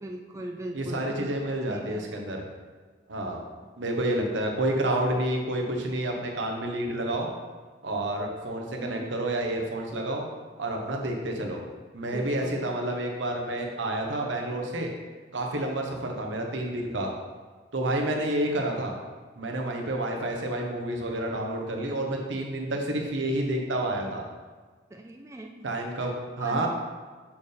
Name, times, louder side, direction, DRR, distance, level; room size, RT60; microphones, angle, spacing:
voice 1, 0.0-1.3 1.7-2.3 8.8-9.2 12.1-13.0 24.9-25.7 26.4-26.7, right 1 dB, 15° right, 1 dB, 0.3 m, -40 dB
voice 2, 0.7-2.4 3.1-3.4 3.8-7.3 7.8-10.2 10.6-11.6 11.9-14.9 15.3-17.1 17.7-18.9 19.4-24.2 25.6-26.7, right 1 dB, 80° right, 1 dB, 0.9 m, -29 dB
7.0 x 4.4 x 3.3 m, 1.4 s
head